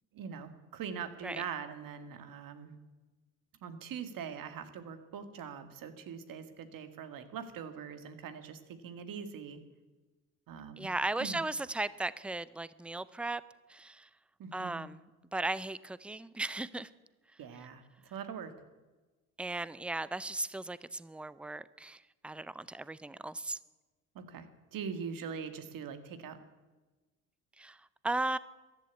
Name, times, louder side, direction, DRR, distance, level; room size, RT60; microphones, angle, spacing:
voice 1, 0.1-2.8 3.6-9.6 10.5-10.9 11.2-11.4 14.4-14.9 17.4-18.5 24.2-24.5 24.7-26.4, right 7 dB, 65° right, 9 dB, 1.9 m, -42 dB
voice 2, 10.8-13.4 13.7-14.1 14.5-15.0 15.3-16.9 19.4-23.6 27.6-28.4, right 2 dB, 5° right, 18 dB, 0.6 m, -36 dB
14.5 x 11.5 x 8.3 m, 1.2 s
supercardioid pair, 75°, 36 cm